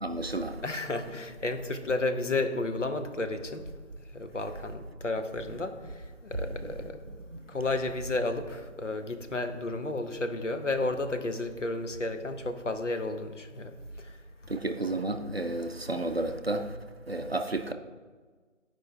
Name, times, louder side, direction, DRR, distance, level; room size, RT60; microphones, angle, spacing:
voice 1, 0.0-0.6 5.5-5.6 6.3-6.8 7.3-7.5 14.5-16.8 17.1-17.7, right 2 dB, 50° right, 0.5 m, -32 dB
voice 2, 0.6-3.7 4.1-7.0 7.5-14.2, left 2 dB, 65° left, 1.0 m, -32 dB
11.5 x 5.0 x 3.8 m
figure-of-eight pair, 170°, 40 cm